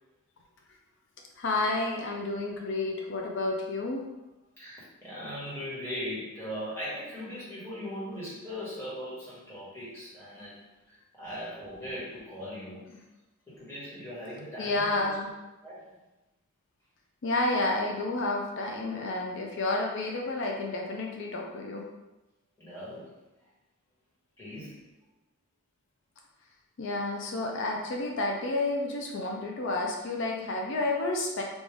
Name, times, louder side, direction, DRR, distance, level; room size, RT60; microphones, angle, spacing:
voice 1, 1.4-4.0 14.6-15.3 17.2-21.8 26.8-31.4, left 2 dB, 60° left, 0 dB, 0.5 m, -30 dB
voice 2, 4.6-10.6 10.9-13.0 13.5-15.1 15.6-15.9 22.6-23.1 24.4-24.8, equal, 10° left, -9 dB, 1.5 m, -39 dB
3.5 x 2.5 x 3.4 m, 1.0 s
head